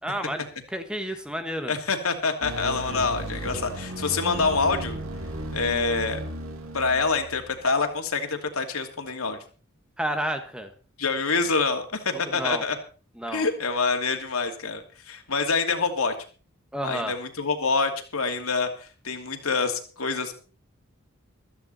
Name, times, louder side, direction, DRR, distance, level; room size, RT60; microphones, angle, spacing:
voice 1, 0.0-1.7 10.0-10.7 12.1-12.6 13.1-13.5 16.7-17.2, equal, 5° right, 7 dB, 1.4 m, -31 dB
voice 2, 1.7-5.0 5.5-6.2 6.7-9.4 11.0-12.8 13.3-16.1 16.8-20.3, left 4 dB, 90° left, 5 dB, 2.6 m, -26 dB
sound 1, 2.4-7.7, right 1 dB, 80° right, 2.3 m, -35 dB
16.0 x 13.0 x 4.2 m, 0.38 s
head